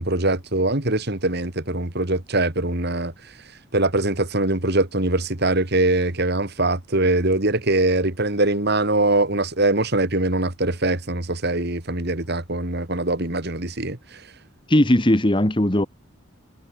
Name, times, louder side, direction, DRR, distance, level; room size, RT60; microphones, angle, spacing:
voice 1, 0.0-3.1 3.7-14.2, right 2 dB, 50° right, 2.6 m, -22 dB
voice 2, 14.7-15.9, left 1 dB, 25° left, 1.5 m, -18 dB
head